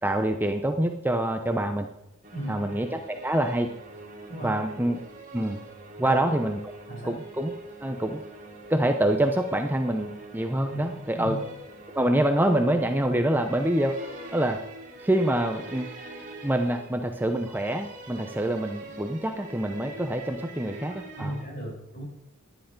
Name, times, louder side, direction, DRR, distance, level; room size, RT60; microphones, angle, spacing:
voice 1, 0.0-1.9 2.5-3.7 4.4-5.0 5.3-5.6 6.0-6.6 7.0-7.5 7.8-8.2 8.7-11.4 11.9-14.1 14.3-14.6 15.0-15.9 16.4-21.3, right 1 dB, 10° right, 5 dB, 0.8 m, -26 dB
sound 1, 2.2-21.4, right 2 dB, 40° right, 3.0 m, -44 dB
voice 2, 2.3-2.7 4.3-4.9 6.0-6.3 6.9-7.2 10.7-10.8 11.1-11.4 20.8-22.0, right 1 dB, 40° left, -2 dB, 6.9 m, -36 dB
16.0 x 10.5 x 5.2 m, 0.91 s
head